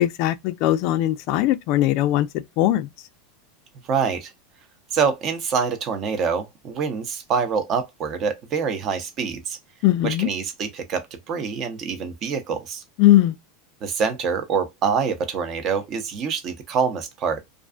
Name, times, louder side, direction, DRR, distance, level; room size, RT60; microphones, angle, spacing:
voice 1, 0.0-2.3 2.6-2.9 9.8-10.3 13.0-13.3, left 14 dB, 55° left, 0.3 m, -19 dB
voice 2, 3.9-4.3 4.9-9.6 10.0-12.8 13.8-17.4, right 6 dB, 40° right, 0.7 m, -25 dB
2.4 x 2.3 x 2.4 m
supercardioid pair, 130°, 0 cm